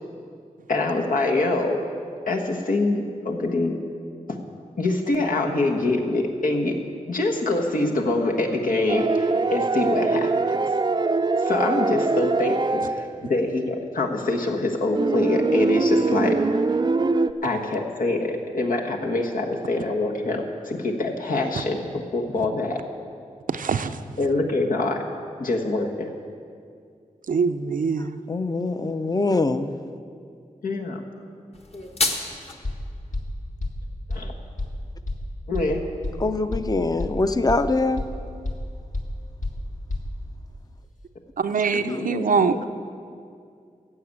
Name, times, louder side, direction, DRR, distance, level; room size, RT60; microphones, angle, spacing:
voice 1, 0.7-1.8 2.3-3.8 4.3-4.4 4.8-6.8 7.1-10.6 11.4-16.4 17.4-21.8 22.1-22.8 24.2-25.0 25.4-26.1 30.6-31.0 34.1-34.3 35.5-35.8 41.9-42.6, left 2 dB, 90° left, 1.4 m, -25 dB
sound 1, 8.9-13.1 14.9-17.3, right 3 dB, 35° right, 0.4 m, -23 dB
voice 2, 23.5-24.0 27.3-28.2 41.4-42.6, right 5 dB, 80° right, 0.6 m, -23 dB
voice 3, 28.3-29.7 36.2-38.0, left 3 dB, 30° left, 0.6 m, -23 dB
sound 2, 31.5-32.5, left 2 dB, 50° left, 1.3 m, -27 dB
sound 3, 32.6-32.7 33.1-33.2 33.6-33.7 34.1-34.2 34.6-34.7 35.1-35.2 35.5-35.6 36.0-36.1 36.5-36.6 37.0-37.1 37.5-37.6 38.0-38.1 38.4-38.5 38.9-39.0 39.4-39.5 39.9-40.0, left 2 dB, 65° left, 1.7 m, -28 dB
15.0 x 6.8 x 8.6 m
wide cardioid pair, 95°, 14 cm